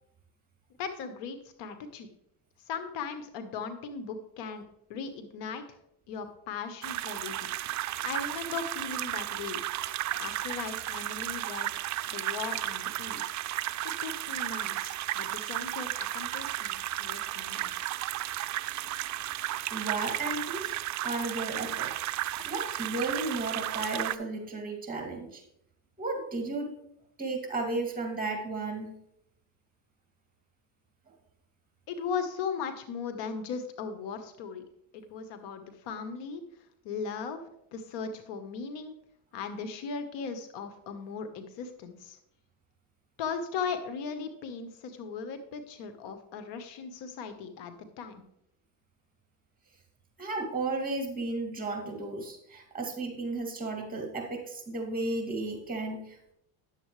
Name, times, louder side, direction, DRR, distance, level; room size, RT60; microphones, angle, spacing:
voice 1, 0.8-2.1 2.7-4.6 4.9-5.6 6.1-7.5 8.0-9.6 10.2-11.7 12.1-13.3 14.0-17.9 31.9-34.6 34.9-36.4 36.8-37.4 37.7-38.9 39.3-42.2 43.2-48.2, left 5 dB, 70° left, 8 dB, 1.2 m, -38 dB
sound 1, 6.8-24.2, right 14 dB, 40° right, 0.4 m, -34 dB
voice 2, 19.7-20.7 21.0-21.9 22.4-25.4 26.0-26.7 27.2-28.9 50.2-56.3, right 3 dB, 20° right, 2 dB, 2.4 m, -34 dB
9.8 x 7.4 x 3.2 m, 0.75 s
supercardioid pair, 95°, 44 cm